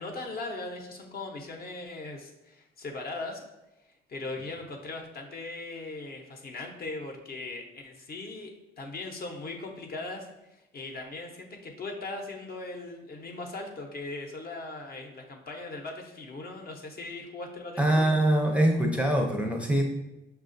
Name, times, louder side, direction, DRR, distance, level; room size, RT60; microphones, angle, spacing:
voice 1, 0.0-3.4 4.1-10.3 10.7-18.2, left 2 dB, 50° left, 2 dB, 0.7 m, -39 dB
voice 2, 17.8-19.8, right 1 dB, 5° right, 1 dB, 0.5 m, -23 dB
5.6 x 2.3 x 2.5 m, 0.94 s
cardioid pair, 90°, 20 cm